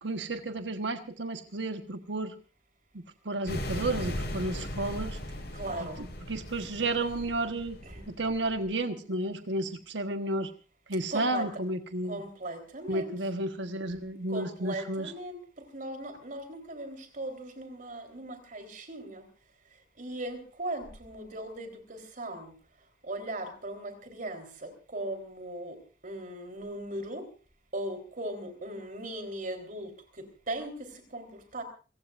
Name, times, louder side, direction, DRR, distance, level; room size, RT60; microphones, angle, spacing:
voice 1, 0.0-2.3 3.2-5.2 5.8-5.9 6.3-7.8 8.2-10.5 10.9-12.2 12.9-15.1, right 2 dB, 80° right, 7 dB, 1.3 m, -32 dB
sound 1, 3.5-8.7, left 1 dB, 70° left, 7.8 m, -38 dB
voice 2, 5.5-6.0 7.8-8.0 11.1-11.5 12.1-13.1 14.3-15.4 15.7-19.2 20.0-22.5 23.0-25.8 26.0-27.3 27.7-29.9 30.2-30.7 31.1-31.6, right 1 dB, 50° right, 6 dB, 3.9 m, -38 dB
27.5 x 16.0 x 2.6 m, 0.35 s
head